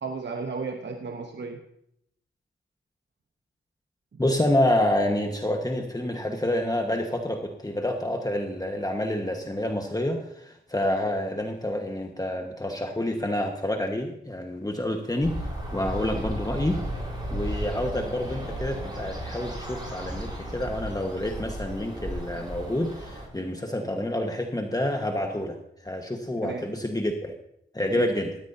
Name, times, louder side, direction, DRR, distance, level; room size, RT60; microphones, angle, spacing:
voice 1, 0.0-1.6 4.1-4.2 26.4-26.7 27.9-28.1, right 4 dB, 55° right, 4 dB, 1.1 m, -34 dB
voice 2, 4.2-16.8 17.3-25.6 25.8-27.3 27.7-28.4, left 1 dB, 15° left, 3 dB, 1.4 m, -28 dB
sound 1, 15.2-23.3, equal, 20° right, 6.7 m, -34 dB
17.5 x 13.5 x 2.8 m, 0.75 s
cardioid pair, 70°, 21 cm